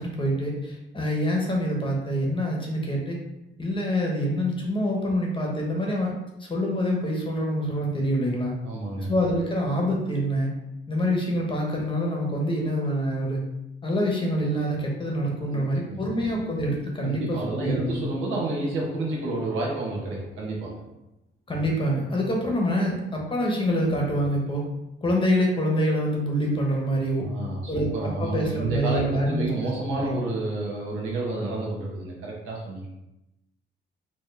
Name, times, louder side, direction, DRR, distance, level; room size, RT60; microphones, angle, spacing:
voice 1, 0.0-3.2 3.6-6.1 6.4-8.5 9.1-10.5 10.9-13.4 13.8-18.1 21.5-24.6 25.0-27.2 27.7-27.9 28.2-29.5 29.9-30.2, equal, 25° left, -1 dB, 0.9 m, -26 dB
voice 2, 8.6-9.1 15.5-16.0 17.0-20.8 27.2-32.9, right 2 dB, 85° right, -3 dB, 1.1 m, -30 dB
4.3 x 2.1 x 3.3 m, 0.89 s
cardioid pair, 90°, 20 cm